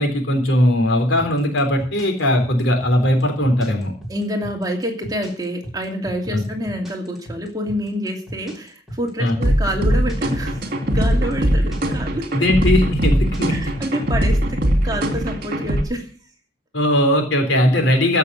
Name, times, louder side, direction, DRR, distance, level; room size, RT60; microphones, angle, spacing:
voice 1, 0.0-3.9 6.3-6.4 9.2-9.4 12.3-13.7 16.7-18.2, left 1 dB, 70° left, 4 dB, 3.9 m, -18 dB
sound 1, 1.2-14.0, right 1 dB, ahead, 4.1 m, -35 dB
voice 2, 4.1-12.3 13.5-16.1, equal, 20° right, 2 dB, 2.6 m, -27 dB
sound 2, 9.4-15.8, equal, 50° right, 2.6 m, -20 dB
15.5 x 6.8 x 7.8 m, 0.43 s
head